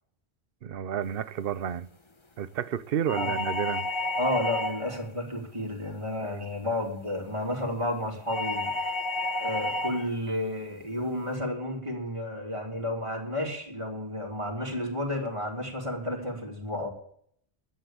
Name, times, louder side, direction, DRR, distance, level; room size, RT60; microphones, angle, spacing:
voice 1, 0.6-1.9 2.4-3.9 6.2-6.4, right 9 dB, 65° right, 0.9 m, -31 dB
sound 1, 3.1-5.0 8.3-10.1, left 2 dB, 30° left, 1.0 m, -30 dB
voice 2, 4.2-9.0 9.4-16.9, left 1 dB, 30° right, 3.2 m, -32 dB
11.5 x 8.8 x 8.9 m
omnidirectional pair, 1.1 m